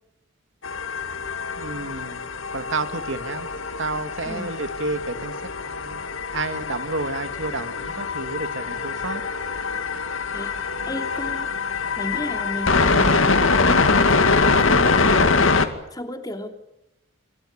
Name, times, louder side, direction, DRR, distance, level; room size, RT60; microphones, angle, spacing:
sound 1, 0.6-15.7, left 4 dB, 85° left, 2.3 m, -23 dB
voice 1, 1.6-3.5 3.8-6.0 6.3-9.2, right 3 dB, 70° right, 9 dB, 2.4 m, -30 dB
voice 2, 10.8-11.5 12.0-15.6 15.9-16.5, left 1 dB, 20° left, 6 dB, 3.0 m, -32 dB
27.0 x 24.5 x 6.9 m, 0.89 s
head